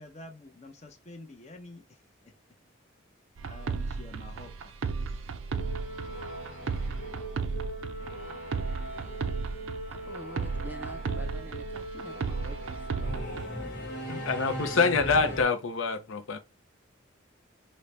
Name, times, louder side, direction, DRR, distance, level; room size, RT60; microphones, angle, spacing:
voice 1, 0.0-2.4 3.4-4.8 5.0-5.3, left 2 dB, 35° left, 0.6 m, -48 dB
sound 1, 3.4-13.5, right 4 dB, 80° right, 0.4 m, -34 dB
Singing / Musical instrument, 5.5-15.4, right 1 dB, 55° left, 1.2 m, -39 dB
voice 2, 9.9-13.1 15.2-15.4, right 1 dB, 10° right, 0.4 m, -47 dB
voice 3, 14.1-16.4, left 4 dB, 80° left, 0.5 m, -26 dB
3.9 x 2.1 x 3.1 m
head